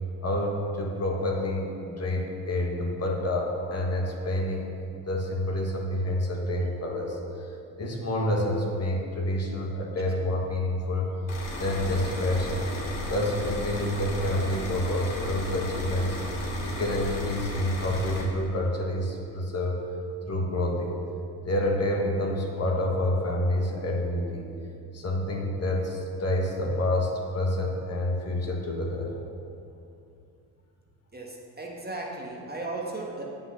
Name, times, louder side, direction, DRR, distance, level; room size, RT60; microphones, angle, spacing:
voice 1, 0.2-4.7 5.0-7.2 7.8-11.1 11.6-12.6 13.1-16.2 16.6-19.9 20.3-21.0 21.4-24.5 24.9-29.1, left 1 dB, 30° left, 0 dB, 1.6 m, -28 dB
sound 1, 11.3-18.2, left 1 dB, 65° left, 2.3 m, -36 dB
sound 2, 11.4-17.4, left 2 dB, 10° left, 1.8 m, -39 dB
voice 2, 31.1-33.2, right 2 dB, 20° right, -1 dB, 1.5 m, -36 dB
7.9 x 5.7 x 6.7 m, 2.6 s
hypercardioid pair, 60°, 48 cm